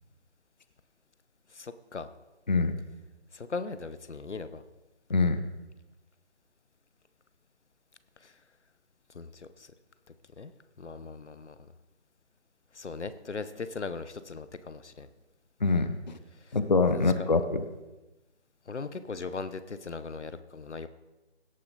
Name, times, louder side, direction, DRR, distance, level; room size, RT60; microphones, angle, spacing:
voice 1, 1.6-2.1 3.3-4.6 9.1-9.3 10.4-10.5 10.8-11.5 12.8-15.1 16.9-17.3 18.7-20.9, left 4 dB, 90° left, 13 dB, 0.9 m, -38 dB
voice 2, 5.1-5.4 15.6-16.2 16.5-17.6, left 3 dB, 40° left, 10 dB, 0.6 m, -25 dB
17.0 x 6.7 x 4.0 m, 1.1 s
figure-of-eight pair, 165°, 34 cm